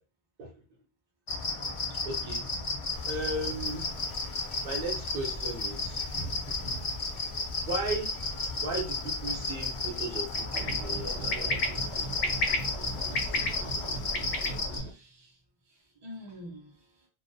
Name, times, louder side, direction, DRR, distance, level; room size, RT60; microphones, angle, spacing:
sound 1, 1.3-14.8, left 3 dB, 50° left, 0.4 m, -33 dB
voice 1, 2.0-2.4 3.1-3.8 4.6-6.9 7.7-8.1 8.6-11.6, right 2 dB, 60° right, 0 dB, 0.8 m, -36 dB
sound 2, 2.9-14.6, left 2 dB, 80° left, 0.8 m, -38 dB
sound 3, 10.5-14.9, right 3 dB, 90° right, 0.9 m, -40 dB
voice 2, 14.6-15.4 15.7-17.1, left 1 dB, 30° right, 0 dB, 0.6 m, -48 dB
2.3 x 2.2 x 2.6 m, 0.34 s
omnidirectional pair, 1.1 m